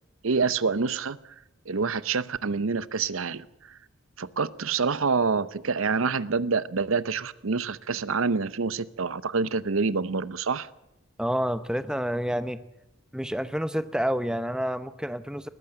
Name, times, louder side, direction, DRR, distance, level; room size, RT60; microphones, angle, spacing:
voice 1, 0.2-1.2 1.7-3.8 4.2-10.7, right 4 dB, 75° right, 17 dB, 0.8 m, -27 dB
voice 2, 11.2-12.6 13.1-15.5, equal, 5° right, 12 dB, 0.8 m, -28 dB
20.5 x 14.5 x 8.8 m, 0.86 s
head